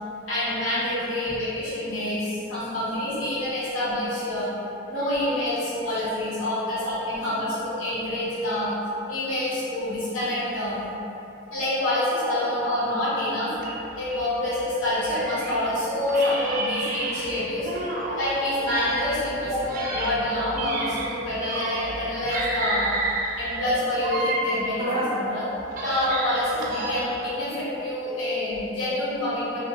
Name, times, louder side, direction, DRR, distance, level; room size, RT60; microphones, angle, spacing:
voice 1, 0.3-4.5 4.9-8.7 9.1-10.9 11.5-13.5 14.0-17.7 18.2-19.6 19.9-22.9 23.4-25.5 25.8-29.6, left 1 dB, 90° left, -10 dB, 0.9 m, -27 dB
sound 1, 13.6-15.7 16.1-18.3 18.6-22.0 22.3-25.2 25.6-27.3, right 2 dB, 45° right, 0.3 m, -30 dB
2.5 x 2.3 x 2.7 m, 2.9 s
head